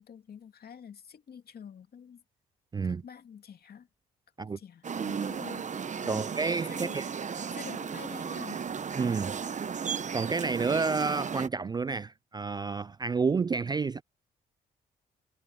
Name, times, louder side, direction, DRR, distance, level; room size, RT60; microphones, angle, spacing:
voice 1, 0.0-2.2 2.9-3.9 4.4-5.7 6.0-6.3 6.7-7.2 7.5-8.6, left 7 dB, 55° left, 2.4 m, -47 dB
voice 2, 2.7-3.0 4.4-4.6 6.1-7.1 8.9-9.4 9.8-14.0, right 4 dB, 20° right, 0.3 m, -30 dB
sound 1, 4.8-11.5, right 6 dB, 40° right, 1.0 m, -35 dB
supercardioid pair, 55°, 19 cm